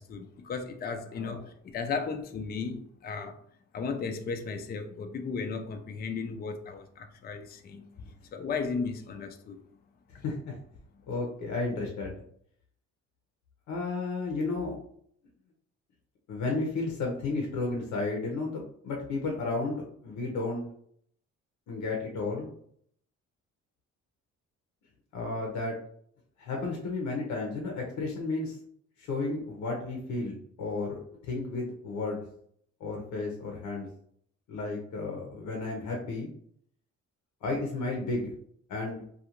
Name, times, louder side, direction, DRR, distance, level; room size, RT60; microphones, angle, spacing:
voice 1, 0.0-3.4 3.7-7.9 8.3-9.6 10.1-10.2, left 5 dB, 30° left, 0.4 m, -35 dB
voice 2, 10.2-10.6 11.1-12.1 13.7-14.7 16.3-20.6 21.7-22.5 25.1-25.8 26.4-28.6 29.0-32.2 32.8-33.9 34.5-36.3 37.4-38.3 38.7-39.0, left 3 dB, 75° left, 0.7 m, -33 dB
2.4 x 2.3 x 2.9 m
cardioid pair, 90°, 30 cm